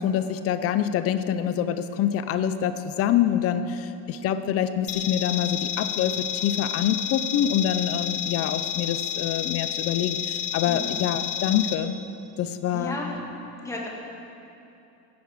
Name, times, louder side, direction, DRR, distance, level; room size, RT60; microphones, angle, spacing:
voice 1, 0.0-11.9 12.4-13.0, left 9 dB, 40° left, 11 dB, 0.5 m, -26 dB
sound 1, 4.9-11.7, left 11 dB, 80° left, 1.2 m, -30 dB
voice 2, 10.7-11.0 12.7-13.2 13.6-13.9, left 2 dB, 10° left, -3 dB, 1.8 m, -33 dB
15.5 x 10.5 x 6.4 m, 2.7 s
cardioid pair, 175°, 39 cm